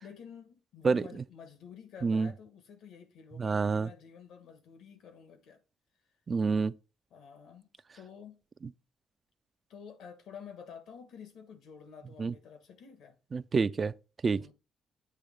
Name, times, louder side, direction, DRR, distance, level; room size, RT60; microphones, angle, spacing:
voice 1, 0.0-5.6 7.1-7.7 8.0-8.4 9.7-13.2 14.3-14.5, left 7 dB, 80° left, 1.3 m, -50 dB
voice 2, 3.4-3.9 6.3-6.7 12.2-12.3 13.3-13.9 14.2-14.5, right 4 dB, 40° right, 0.4 m, -28 dB
8.4 x 3.1 x 5.1 m
cardioid pair, 90°, 0 cm